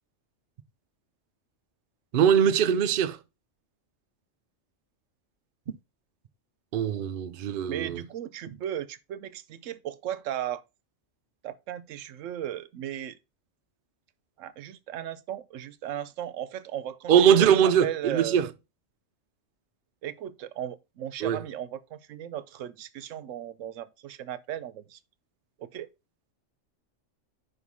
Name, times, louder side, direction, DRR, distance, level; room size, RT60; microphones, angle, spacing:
voice 1, 2.1-3.2 5.7-5.8 6.7-8.0 17.1-18.5 21.2-21.4, right 8 dB, 55° right, 0.7 m, -22 dB
voice 2, 7.7-10.6 11.4-13.2 14.4-18.4 20.0-25.0 25.6-25.9, right 10 dB, 85° right, 1.0 m, -36 dB
5.6 x 5.3 x 4.7 m
omnidirectional pair, 1.3 m